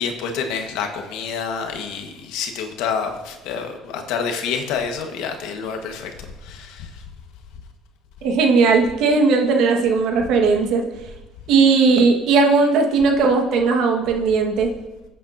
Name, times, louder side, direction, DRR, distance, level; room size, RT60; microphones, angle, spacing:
voice 1, 0.0-6.1 6.4-6.9, left 6 dB, 80° left, 4 dB, 1.4 m, -28 dB
voice 2, 8.2-10.8 11.5-14.7, right 4 dB, 70° right, 2 dB, 1.5 m, -17 dB
22.0 x 8.5 x 2.7 m, 1.1 s
cardioid pair, 100°, 0 cm